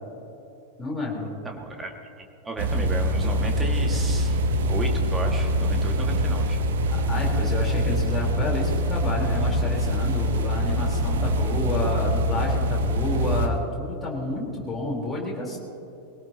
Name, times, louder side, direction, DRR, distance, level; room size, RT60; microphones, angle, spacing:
voice 1, 0.8-1.4 6.9-15.6, left 2 dB, 5° left, -5 dB, 4.2 m, -30 dB
voice 2, 1.4-1.9 2.4-4.4 4.7-6.6, right 2 dB, 15° right, 2 dB, 2.1 m, -33 dB
sound 1, 2.6-13.5, equal, 60° right, 1.2 m, -24 dB
21.5 x 18.0 x 3.0 m, 2.8 s
figure-of-eight pair, 90°, 0 cm